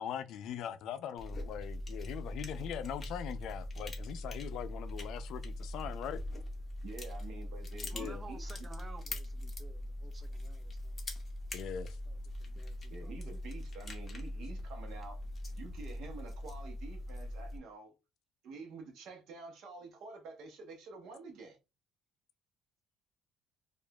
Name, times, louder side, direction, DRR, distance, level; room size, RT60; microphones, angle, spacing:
voice 1, 0.0-6.2 7.9-8.2 11.5-12.0, left 9 dB, 60° left, 0.4 m, -41 dB
sound 1, 1.2-17.6, left 1 dB, 20° left, 0.8 m, -41 dB
voice 2, 6.8-8.4 12.9-15.2 15.6-17.9 18.4-21.6, right 4 dB, 60° right, 0.9 m, -48 dB
voice 3, 7.9-11.1 12.1-13.2, right 3 dB, 15° right, 0.4 m, -53 dB
4.7 x 2.4 x 2.3 m
cardioid pair, 170°, 0 cm